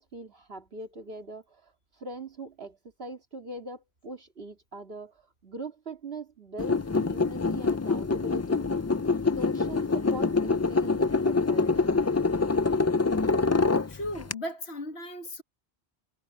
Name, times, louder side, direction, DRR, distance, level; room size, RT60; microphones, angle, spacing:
voice 1, 0.0-8.7 9.3-11.8, right 2 dB, 65° right, 2.5 m, -41 dB
sound 1, 6.6-14.3, left 4 dB, 25° left, 0.3 m, -25 dB
voice 2, 13.9-15.4, left 1 dB, 80° left, 2.2 m, -36 dB
omnidirectional pair, 1.1 m